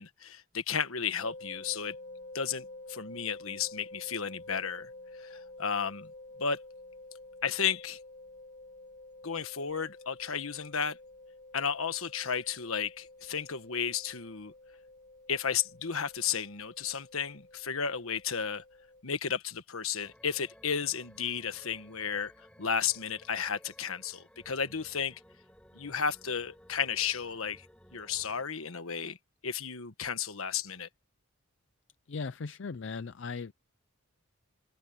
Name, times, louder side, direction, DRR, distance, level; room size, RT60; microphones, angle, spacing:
voice 1, 0.0-2.0 2.3-4.9 5.2-6.1 6.4-6.6 7.4-8.0 9.2-11.0 11.5-14.5 15.3-18.6 19.0-25.2 25.7-27.7 27.9-29.2 29.4-30.9, left 7 dB, 75° left, 1.4 m, -33 dB
sound 1, 1.2-19.0, left 2 dB, 40° left, 4.2 m, -50 dB
sound 2, 20.0-28.4, equal, 5° left, 5.6 m, -58 dB
voice 2, 32.1-33.5, left 4 dB, 55° left, 0.5 m, -38 dB
head